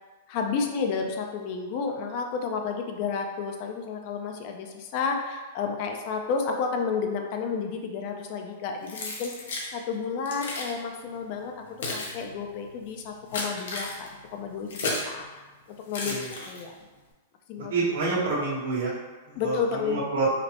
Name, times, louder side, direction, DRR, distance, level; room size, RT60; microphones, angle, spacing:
voice 1, 0.3-16.2 16.5-16.7 17.5-17.7 19.4-20.0, left 5 dB, 45° left, 3 dB, 0.5 m, -31 dB
Keys jangling, 8.9-9.7 10.3-10.7 11.5-15.2 15.9-16.8, left 2 dB, 80° left, 0.9 m, -34 dB
voice 2, 17.7-18.9 19.3-20.3, right 3 dB, 85° right, -7 dB, 1.5 m, -28 dB
5.1 x 2.0 x 2.9 m, 1.2 s
supercardioid pair, 150°, 0 cm